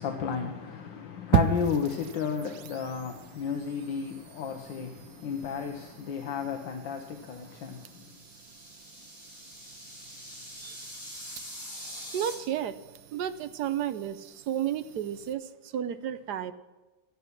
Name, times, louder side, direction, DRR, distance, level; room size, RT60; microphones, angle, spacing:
voice 1, 0.0-8.1, left 6 dB, 80° left, 1.6 m, -33 dB
sound 1, 1.3-15.3, right 10 dB, 85° right, 1.4 m, -37 dB
sound 2, 7.2-12.3, equal, 25° left, 5.6 m, -44 dB
voice 2, 12.1-12.8 13.1-16.5, right 10 dB, 70° right, 1.2 m, -32 dB
12.5 x 9.3 x 5.9 m
omnidirectional pair, 2.0 m